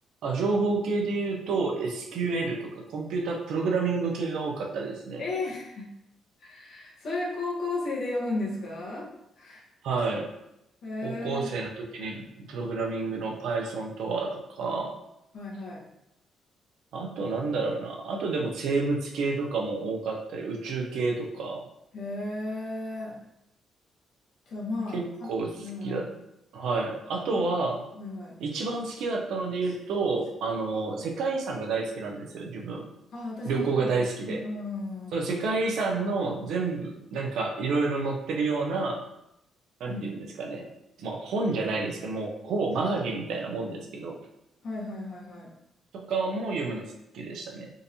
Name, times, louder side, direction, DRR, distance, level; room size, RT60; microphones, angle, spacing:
voice 1, 0.2-5.2 9.8-10.3 11.0-12.2 12.5-15.0 16.9-21.6 24.9-26.1 26.5-27.8 28.4-32.9 33.4-34.4 35.1-39.0 39.8-40.7 41.0-44.2 45.9-47.7, right 3 dB, 80° right, 1 dB, 0.6 m, -29 dB
voice 2, 5.2-5.9 6.4-9.1 9.4-9.6 10.8-11.5 15.3-15.8 21.9-23.2 24.5-25.3 25.6-26.0 27.3-27.4 27.9-28.4 33.1-33.9 34.2-35.2 39.8-40.1 44.6-45.5, left 2 dB, 65° left, -5 dB, 1.2 m, -34 dB
3.8 x 2.7 x 2.7 m, 0.84 s
cardioid pair, 90°, 0 cm